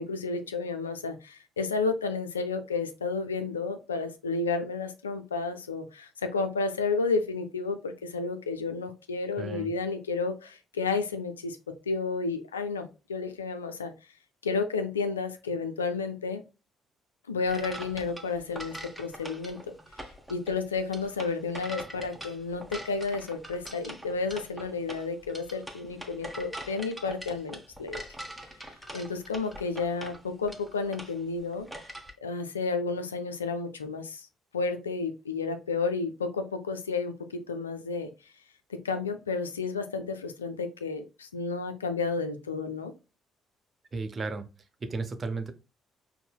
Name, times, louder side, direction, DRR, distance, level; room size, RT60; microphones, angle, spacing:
voice 1, 0.0-11.6 11.9-13.9 14.4-16.4 17.3-19.6 20.3-28.0 28.9-31.7 32.2-34.3 34.5-38.1 38.7-42.9, left 4 dB, 90° left, 8 dB, 0.3 m, -31 dB
voice 2, 9.4-9.7 43.9-44.5 44.8-45.5, right 3 dB, 40° right, 8 dB, 0.6 m, -34 dB
sound 1, 17.4-32.1, equal, 5° right, 0.9 m, -43 dB
5.3 x 2.0 x 2.3 m, 0.30 s
figure-of-eight pair, 50°, 0 cm